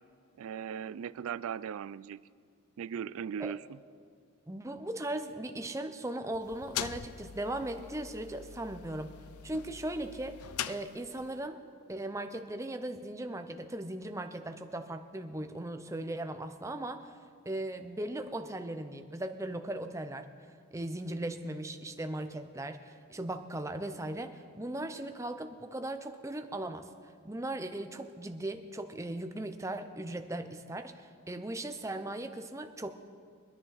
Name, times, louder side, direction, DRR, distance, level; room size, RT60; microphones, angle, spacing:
voice 1, 0.4-2.2 2.8-3.8, right 8 dB, 70° right, 0.3 m, -38 dB
voice 2, 4.5-9.1 9.4-10.4 10.7-11.6 11.9-17.1 17.5-20.3 20.7-26.9 27.2-32.9, right 1 dB, 15° right, 0.6 m, -38 dB
sound 1, 6.3-11.4, left 9 dB, 85° left, 0.5 m, -42 dB
23.5 x 10.5 x 4.1 m
head